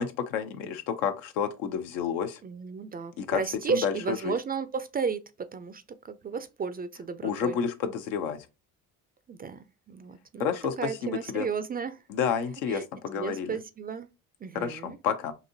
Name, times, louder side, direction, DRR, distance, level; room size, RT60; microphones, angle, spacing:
voice 1, 0.0-2.4 3.2-3.4 3.7-4.3 7.2-8.5 10.4-11.5 12.1-13.6 14.5-15.3, left 7 dB, 80° left, 0.6 m, -30 dB
voice 2, 2.4-7.6 9.3-10.5 10.8-12.0 12.7-12.8 13.1-14.1 14.4-15.0, right 5 dB, 25° right, 0.3 m, -33 dB
4.0 x 2.7 x 2.6 m
hypercardioid pair, 55°, 40 cm